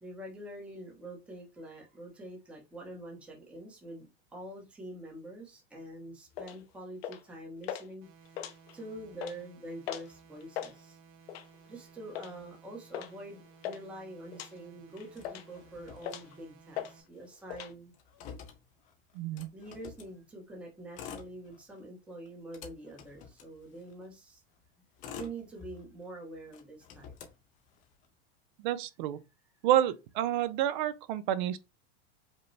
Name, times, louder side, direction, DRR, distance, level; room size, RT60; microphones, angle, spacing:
voice 1, 0.0-4.1 4.3-11.0 11.7-17.9 19.5-24.4 25.1-27.1, right 1 dB, 5° right, 0.8 m, -45 dB
sound 1, 6.4-6.6 7.0-7.3 7.6-7.9 8.3-8.8 9.1-9.4 9.9-10.1 10.4-10.7 11.3-11.6 12.1-12.3 12.9-13.1 13.4-13.8 14.3-14.5 15.0-15.6 16.0-16.4 16.8-16.9 17.2-17.7, left 10 dB, 70° left, 0.8 m, -39 dB
sound 2, 8.0-17.0, right 6 dB, 70° right, 2.1 m, -58 dB
Motor vehicle (road), 15.1-16.7 17.0-17.1 17.4-20.1 20.8-21.8 22.2-24.1 24.6-26.1 26.5-28.1, left 7 dB, 25° left, 0.5 m, -49 dB
voice 2, 19.1-19.5 28.6-29.2 29.6-31.6, right 12 dB, 45° right, 0.5 m, -29 dB
5.1 x 2.1 x 3.1 m
supercardioid pair, 160°, 32 cm